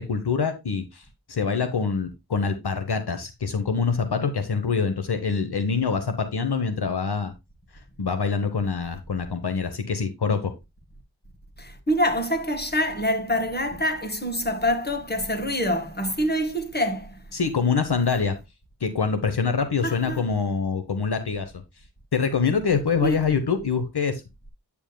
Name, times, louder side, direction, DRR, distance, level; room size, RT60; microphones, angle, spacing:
voice 1, 0.0-7.3 8.0-10.5 17.3-18.4 18.8-21.5 22.1-24.2, left 5 dB, 70° left, 1.0 m, -25 dB
voice 2, 11.6-17.1 19.8-20.2 23.0-23.2, equal, 25° left, 1.7 m, -26 dB
8.8 x 7.1 x 2.2 m
wide cardioid pair, 55°, 41 cm